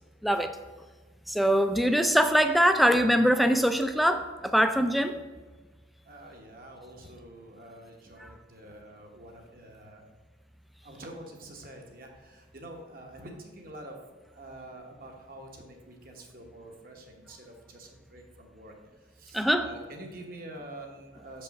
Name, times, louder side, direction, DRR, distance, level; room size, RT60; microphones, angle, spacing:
voice 1, 1.3-5.1 8.2-8.3 19.3-19.7, equal, ahead, 8 dB, 0.3 m, -23 dB
voice 2, 6.0-10.0 10.8-14.0 14.3-18.7 19.0-21.4, right 1 dB, 50° right, 2 dB, 1.2 m, -46 dB
6.7 x 5.4 x 5.3 m, 1.3 s
head